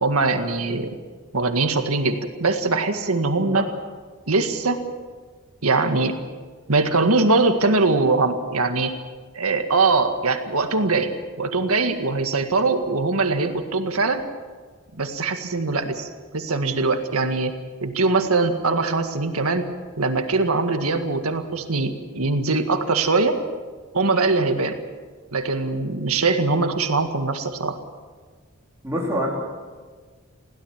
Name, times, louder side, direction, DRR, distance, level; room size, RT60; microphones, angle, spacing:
voice 1, 0.0-1.0 1.3-3.7 4.3-4.8 5.6-6.2 6.7-9.0 9.3-14.3 14.9-16.1 16.3-17.5 17.8-19.7 20.0-23.4 23.9-24.8 25.3-27.8, right 3 dB, 80° right, 6 dB, 1.9 m, -22 dB
voice 2, 28.8-29.3, equal, 10° right, -4 dB, 3.4 m, -26 dB
21.5 x 16.5 x 7.4 m, 1.5 s
head